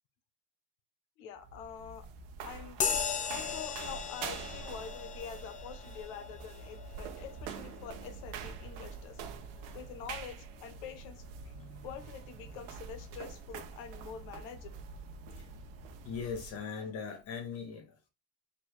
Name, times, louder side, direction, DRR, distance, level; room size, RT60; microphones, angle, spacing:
voice 1, 1.2-2.1 2.4-2.8 3.2-9.3 9.7-11.2 11.8-14.8, left 7 dB, 75° left, 0.9 m, -46 dB
sound 1, 1.3-16.6, right 6 dB, 80° right, 0.8 m, -45 dB
sound 2, 2.8-10.7, left 7 dB, 25° left, 0.5 m, -39 dB
voice 2, 16.0-18.1, left 6 dB, 45° left, 1.4 m, -39 dB
4.5 x 2.8 x 3.3 m
cardioid pair, 135°, 32 cm